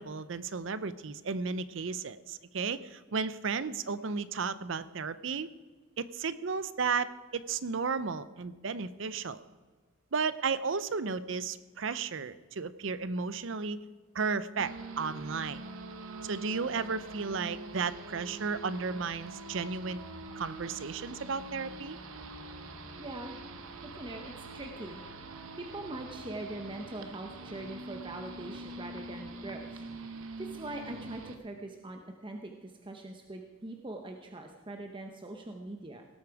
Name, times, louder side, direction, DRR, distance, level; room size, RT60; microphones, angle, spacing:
voice 1, 0.0-5.5 6.0-7.1 7.3-9.4 10.1-13.8 14.1-15.6 16.2-20.0 20.4-22.0, right 5 dB, 65° right, 15 dB, 0.6 m, -34 dB
sound 1, 14.6-31.4, right 2 dB, 85° right, 1.1 m, -44 dB
voice 2, 23.0-23.4 23.8-25.0 25.6-36.0, right 2 dB, 25° right, 3 dB, 0.8 m, -42 dB
17.5 x 8.4 x 4.7 m, 1.4 s
head